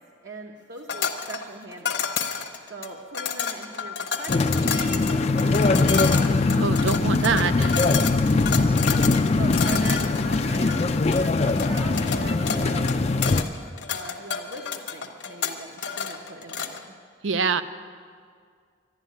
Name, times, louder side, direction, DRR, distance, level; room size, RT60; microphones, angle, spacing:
voice 1, 0.2-2.0 2.7-6.3 9.3-13.6 13.9-16.9, right 3 dB, 60° right, 1 dB, 0.9 m, -40 dB
sound 1, 0.9-16.8, left 7 dB, 55° left, 1.0 m, -30 dB
sound 2, 4.3-13.4, left 3 dB, 35° left, 0.4 m, -22 dB
voice 2, 6.5-8.0 17.2-17.6, right 5 dB, 75° right, 12 dB, 0.6 m, -25 dB
11.5 x 11.5 x 9.3 m, 2.1 s
head